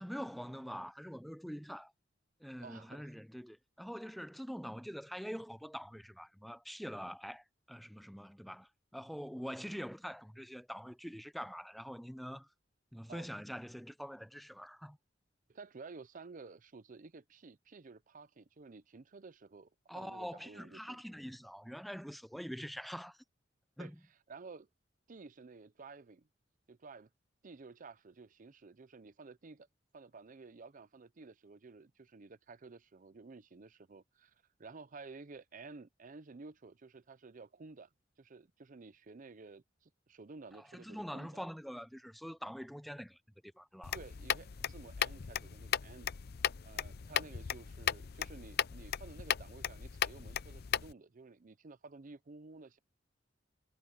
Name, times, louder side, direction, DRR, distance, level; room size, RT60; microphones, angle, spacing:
voice 1, 0.0-1.9 2.4-12.5 12.9-15.0 19.9-23.2 23.8-24.0 40.5-44.0, equal, ahead, 0.6 m, -45 dB
voice 2, 2.6-3.1 13.1-13.3 15.5-21.0 23.8-23.9 24.3-24.7 25.1-26.3 26.7-27.1 27.4-29.7 29.9-37.9 38.2-41.3 43.9-46.1 46.6-52.8, right 4 dB, 45° right, 0.6 m, -53 dB
sound 1, 43.8-50.9, left 9 dB, 55° left, 0.5 m, -37 dB
head